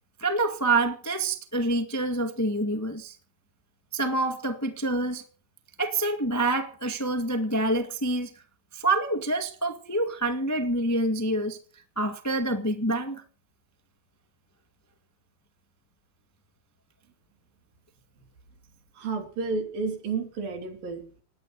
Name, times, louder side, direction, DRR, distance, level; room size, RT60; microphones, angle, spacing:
voice 1, 0.2-3.1 3.9-5.3 5.8-8.3 8.7-11.6 12.0-13.2, right 2 dB, 20° left, 0.4 m, -27 dB
voice 2, 18.9-21.2, right 4 dB, 85° right, 5.1 m, -31 dB
19.0 x 9.8 x 7.7 m
omnidirectional pair, 4.0 m